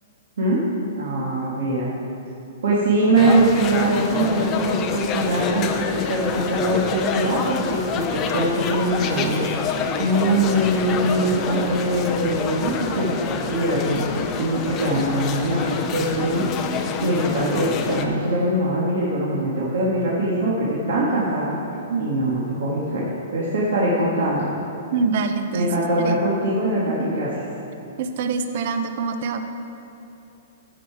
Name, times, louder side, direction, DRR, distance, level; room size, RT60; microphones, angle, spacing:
voice 1, 1.0-1.9 2.6-9.5 10.0-16.5 17.0-21.5 22.0-23.1 23.3-24.5 25.5-27.3, right 1 dB, 70° right, -6 dB, 1.8 m, -22 dB
sound 1, 3.1-18.0, left 6 dB, 20° left, 0.5 m, -27 dB
voice 2, 24.9-26.2 27.0-27.1 28.0-29.4, right 4 dB, 45° right, 7 dB, 0.6 m, -25 dB
14.5 x 5.6 x 4.8 m, 2.8 s
hypercardioid pair, 170°, 0 cm